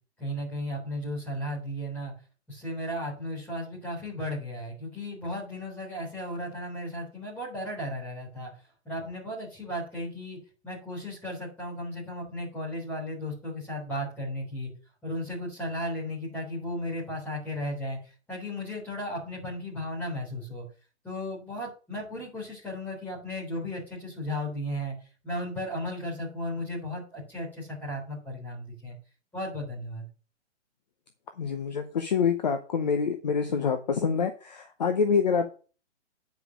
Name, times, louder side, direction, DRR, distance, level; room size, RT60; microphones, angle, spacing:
voice 1, 0.2-2.1 2.5-8.5 8.9-10.4 10.6-14.7 15.0-18.0 18.3-20.6 21.0-24.9 25.2-29.0 29.3-30.0, left 1 dB, 5° left, -6 dB, 3.5 m, -35 dB
voice 2, 31.4-35.6, left 6 dB, 35° left, 7 dB, 0.8 m, -26 dB
9.3 x 5.2 x 6.1 m, 0.36 s
hypercardioid pair, 175°, 36 cm